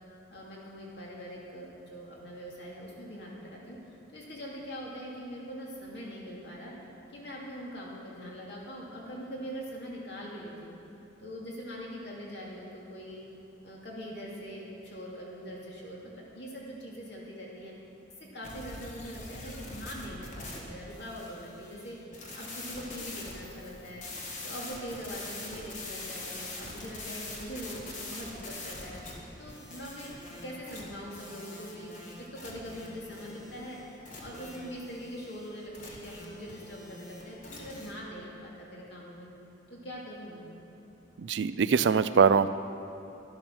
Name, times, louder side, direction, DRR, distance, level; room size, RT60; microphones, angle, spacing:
voice 1, 0.3-6.7 7.1-10.8 11.2-13.2 13.6-17.7 18.2-24.0 24.4-29.0 29.4-33.8 34.2-39.3 39.7-40.5, equal, 60° left, -4 dB, 2.6 m, -42 dB
sound 1, 18.4-37.9, left 2 dB, 40° left, 1.7 m, -44 dB
voice 2, 41.2-42.5, right 6 dB, 65° right, 13 dB, 0.4 m, -23 dB
12.0 x 10.5 x 6.3 m, 2.8 s
head